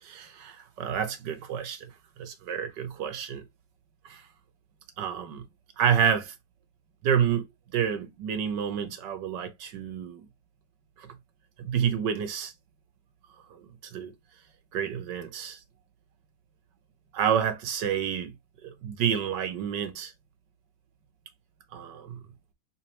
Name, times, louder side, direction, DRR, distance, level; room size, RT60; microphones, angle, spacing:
voice 1, 0.0-1.9 2.2-3.4 4.0-4.2 5.0-5.4 5.8-6.3 7.0-7.4 7.7-10.3 11.0-11.1 11.6-12.5 13.5-14.1 14.7-15.6 17.1-18.3 18.6-20.1 21.7-22.2, right 8 dB, 75° right, 1.6 m, -29 dB
4.1 x 4.1 x 3.0 m
omnidirectional pair, 1.9 m